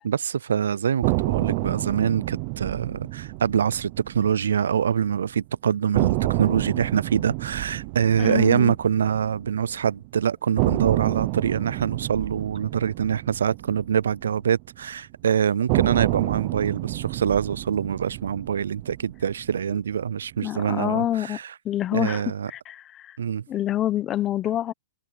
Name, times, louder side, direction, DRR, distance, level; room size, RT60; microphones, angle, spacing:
voice 1, 0.0-21.5 21.9-22.5 23.2-23.4, right 8 dB, 80° right, 0.3 m, -24 dB
sound 1, 1.0-5.1 5.4-5.5 5.9-10.0 10.6-14.9 15.7-20.0, right 23 dB, 30° right, 0.7 m, -29 dB
voice 2, 8.2-8.7 20.4-21.4 21.6-22.2 22.5-23.2 23.5-24.7, left 12 dB, 15° left, 0.9 m, -27 dB
hypercardioid pair, 175°, 0 cm